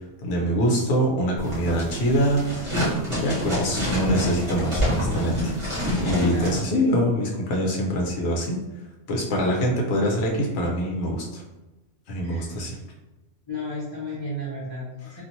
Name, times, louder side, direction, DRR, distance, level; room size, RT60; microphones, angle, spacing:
voice 1, 0.2-5.6 6.0-8.6 9.1-11.4 12.1-12.8 15.0-15.2, equal, 65° left, -2 dB, 1.0 m, -24 dB
sound 1, 1.4-6.6, equal, 30° right, 1.0 m, -27 dB
voice 2, 6.2-6.6 12.2-12.5 13.5-14.9 15.1-15.2, left 1 dB, 25° left, -10 dB, 0.8 m, -33 dB
2.8 x 2.5 x 2.6 m, 1.1 s
omnidirectional pair, 1.2 m